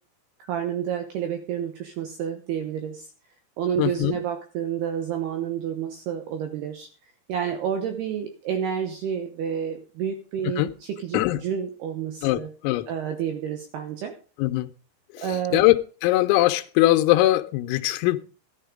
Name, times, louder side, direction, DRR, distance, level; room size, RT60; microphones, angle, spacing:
voice 1, 0.4-3.1 3.6-6.9 7.3-12.5 12.9-14.1 15.2-15.7, right 8 dB, 75° right, 2.4 m, -29 dB
voice 2, 3.8-4.2 10.6-10.7 11.1-11.4 12.2-12.9 14.4-14.7 15.1-15.3 15.5-15.8 16.0-18.2, left 16 dB, 85° left, 3.4 m, -21 dB
13.0 x 11.5 x 3.8 m
omnidirectional pair, 6.0 m